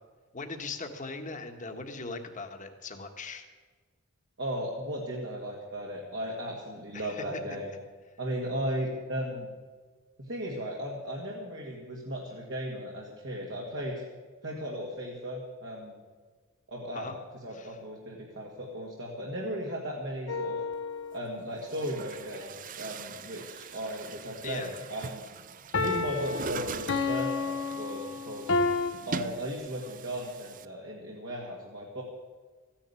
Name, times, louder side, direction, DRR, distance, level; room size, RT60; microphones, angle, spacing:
voice 1, 0.3-3.5 6.9-7.2 16.9-17.1 17.5-17.8 24.4-24.7, left 3 dB, 35° left, 5 dB, 1.5 m, -39 dB
voice 2, 4.4-7.7 8.2-9.5 10.2-14.0 14.4-15.9 16.7-17.1 17.4-20.6 21.1-25.2 25.7-28.6 29.1-32.0, equal, 60° right, -2 dB, 2.1 m, -36 dB
sound 1, 20.3-21.3 25.7-28.9, left 4 dB, 60° left, 1.0 m, -30 dB
Chatter / Gurgling / Tap, 20.7-20.8 21.5-30.7, right 5 dB, 40° right, 0.5 m, -42 dB
14.5 x 10.0 x 8.4 m, 1.4 s
head